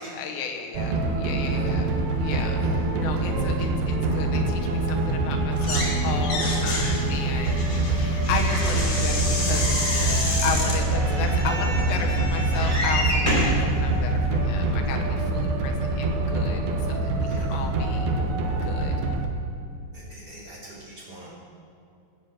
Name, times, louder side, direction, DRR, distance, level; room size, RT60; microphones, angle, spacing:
voice 1, 0.0-1.9 2.2-2.7 3.0-16.6 16.9-18.1 18.6-18.9, left 6 dB, 80° left, 3 dB, 3.4 m, -34 dB
sound 1, 0.7-19.3, right 2 dB, 80° right, 3.3 m, -25 dB
voice 2, 2.1-2.8 3.1-3.3 3.5-3.7 17.3-17.7 19.9-21.3, right 1 dB, 25° right, -6 dB, 4.0 m, -44 dB
sound 2, 5.5-6.0 6.2-10.8, left 2 dB, 45° left, 3.9 m, -30 dB
sound 3, 8.3-13.6 14.3-14.4 14.7-14.8, equal, 15° left, 3.9 m, -30 dB
15.5 x 9.3 x 7.5 m, 2.5 s
omnidirectional pair, 5.0 m